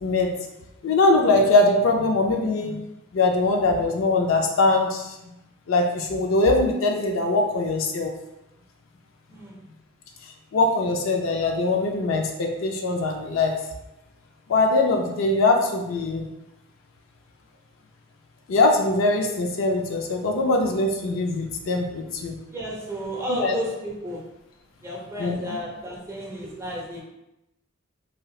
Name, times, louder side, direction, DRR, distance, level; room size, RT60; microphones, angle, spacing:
voice 1, 0.0-0.3 0.8-2.8 3.1-5.3 5.7-8.1 10.5-13.5 14.5-16.3 18.5-22.4 23.3-23.6 25.2-25.6, left 2 dB, 70° left, 2 dB, 0.4 m, -22 dB
voice 2, 22.5-24.2 24.8-27.0, equal, 15° right, -3 dB, 0.6 m, -32 dB
3.1 x 2.7 x 2.3 m, 0.91 s
head